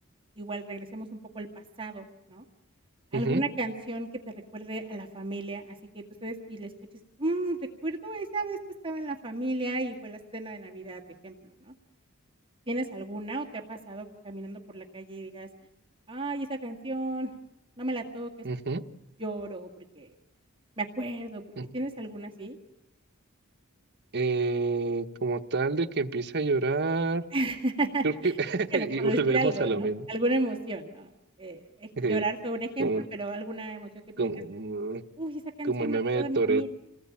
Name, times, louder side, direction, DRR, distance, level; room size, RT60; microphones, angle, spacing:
voice 1, 0.4-1.5 1.8-2.4 3.1-6.7 7.2-8.6 8.8-11.4 11.6-11.7 12.7-15.5 16.1-17.3 17.8-18.3 19.2-20.1 20.8-21.4 21.7-22.6 27.3-28.4 28.7-31.1 31.4-34.3 35.2-36.7, right 2 dB, 25° right, 0 dB, 1.9 m, -33 dB
voice 2, 3.1-3.4 18.4-18.8 21.6-21.7 24.1-27.3 28.0-30.1 32.0-32.2 32.8-33.0 34.2-35.0 35.6-36.7, right 3 dB, 55° right, 7 dB, 1.1 m, -28 dB
28.5 x 19.0 x 8.6 m, 0.88 s
head